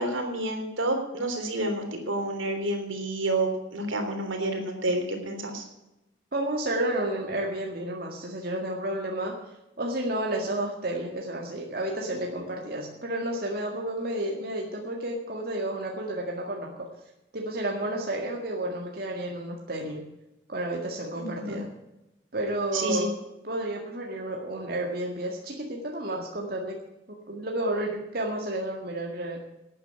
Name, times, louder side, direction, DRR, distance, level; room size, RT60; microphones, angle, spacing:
voice 1, 0.0-5.6 21.2-21.6 22.7-23.1, right 1 dB, 80° right, 5 dB, 3.4 m, -29 dB
voice 2, 6.3-9.4 9.8-16.9 17.3-20.0 20.5-21.7 22.3-23.2 23.4-26.8 27.1-29.4, right 1 dB, 50° right, 0 dB, 1.9 m, -31 dB
12.5 x 9.2 x 8.7 m, 0.93 s
head